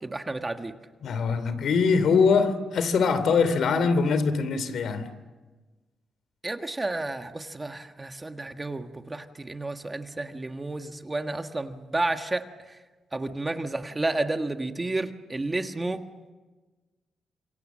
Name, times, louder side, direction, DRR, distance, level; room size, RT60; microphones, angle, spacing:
voice 1, 0.0-0.7 6.4-12.8 13.1-16.0, right 2 dB, 15° right, 6 dB, 1.5 m, -31 dB
voice 2, 1.0-5.1, left 5 dB, 70° left, 12 dB, 3.0 m, -23 dB
29.5 x 27.0 x 7.5 m, 1.3 s
wide cardioid pair, 140°, 0 cm